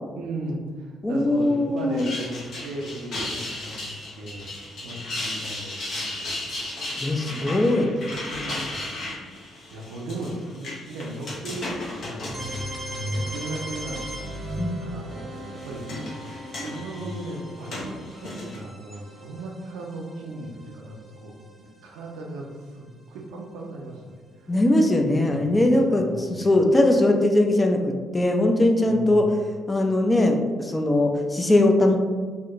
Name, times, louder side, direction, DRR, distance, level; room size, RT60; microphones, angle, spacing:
voice 1, 0.2-4.5 4.8-6.4 7.2-7.8 8.1-9.0 9.7-12.4 12.8-14.2 14.8-24.5 25.3-25.5 25.9-26.6 28.8-29.3, right 1 dB, 75° right, 0 dB, 0.4 m, -37 dB
voice 2, 1.0-2.1 7.0-7.9 14.6-14.8 24.5-29.3 29.7-32.0, left 1 dB, 20° left, 3 dB, 0.3 m, -20 dB
sound 1, 1.8-13.5 14.0-14.5 15.4-18.6, left 2 dB, 60° left, 0.6 m, -35 dB
sound 2, 12.3-22.1, right 1 dB, 20° right, 0.8 m, -36 dB
2.8 x 2.0 x 2.4 m, 1.5 s
hypercardioid pair, 45°, 0 cm